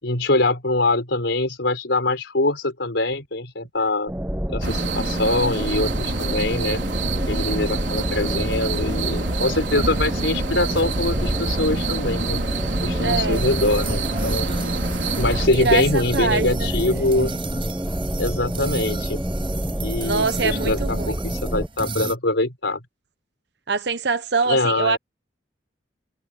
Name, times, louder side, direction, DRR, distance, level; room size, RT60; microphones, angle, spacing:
voice 1, 0.0-4.1 4.5-6.9 7.3-12.4 12.8-14.5 15.2-17.3 18.2-19.2 19.8-22.8 24.5-25.0, left 2 dB, 80° left, 4.0 m, -23 dB
sound 1, 4.1-21.7, equal, 10° right, 0.9 m, -27 dB
sound 2, 4.6-15.5, right 3 dB, 90° right, 3.5 m, -28 dB
voice 2, 13.0-13.4 15.5-16.7 17.2-17.3 18.8-19.0 20.0-21.1 23.7-25.0, right 4 dB, 65° right, 1.1 m, -24 dB
sound 3, 13.3-22.2, right 3 dB, 30° right, 6.8 m, -34 dB
head